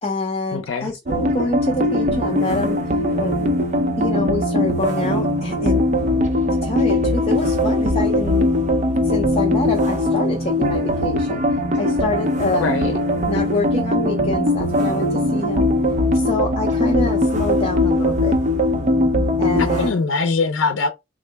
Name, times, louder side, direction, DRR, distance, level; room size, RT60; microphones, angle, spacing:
voice 1, 0.0-2.8 3.2-3.4 3.9-5.8 6.6-8.5 9.0-12.8 13.3-15.7 16.1-18.4 19.4-20.0, left 2 dB, 30° left, 0.6 m, -26 dB
voice 2, 0.5-0.9 12.6-12.9 19.7-20.9, left 4 dB, 85° left, 0.5 m, -22 dB
sound 1, 1.1-19.9, left 1 dB, 40° right, 0.5 m, -20 dB
3.7 x 2.0 x 3.2 m
head